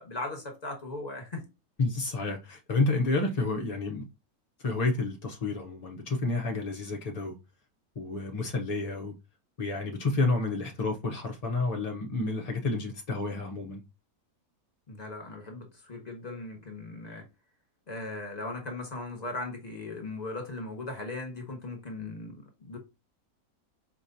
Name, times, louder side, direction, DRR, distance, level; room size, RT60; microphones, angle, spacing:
voice 1, 0.0-1.5 14.9-17.3 17.9-22.8, left 2 dB, 30° left, 1.4 m, -38 dB
voice 2, 1.8-4.1 4.6-7.4 8.0-9.1 9.6-13.8, left 3 dB, 45° left, 0.5 m, -30 dB
4.8 x 2.9 x 2.6 m
omnidirectional pair, 1.6 m